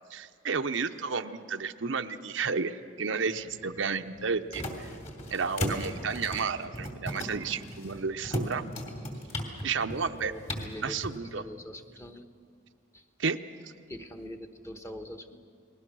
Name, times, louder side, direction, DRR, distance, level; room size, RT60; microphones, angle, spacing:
voice 1, 0.1-4.9 5.3-8.6 9.6-10.3 10.8-11.4 13.2-13.4 13.6-13.7, right 5 dB, 70° right, 8 dB, 0.7 m, -32 dB
sound 1, 3.3-11.2, equal, 35° left, 2.9 m, -38 dB
voice 2, 10.2-11.0 11.3-12.2 12.9-13.0 13.9-15.4, left 1 dB, 15° left, 5 dB, 1.1 m, -43 dB
30.0 x 20.5 x 6.2 m, 2.2 s
head